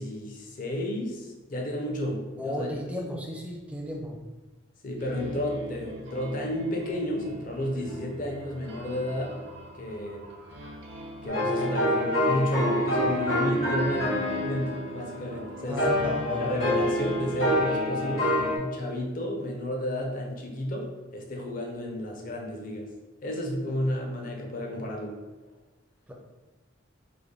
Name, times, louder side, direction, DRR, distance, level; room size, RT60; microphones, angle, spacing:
voice 1, 0.0-2.7 4.8-9.3 9.7-10.3 11.2-15.9 16.4-22.9 23.2-25.2, left 1 dB, 45° left, 0 dB, 0.6 m, -32 dB
voice 2, 2.4-4.2 15.7-16.6 26.1-26.2, equal, 5° right, 0 dB, 0.4 m, -34 dB
sound 1, 5.0-18.6, equal, 55° right, 0.5 m, -40 dB
sound 2, 11.3-18.6, left 1 dB, 90° left, 1.1 m, -27 dB
3.3 x 2.1 x 3.7 m, 1.2 s
head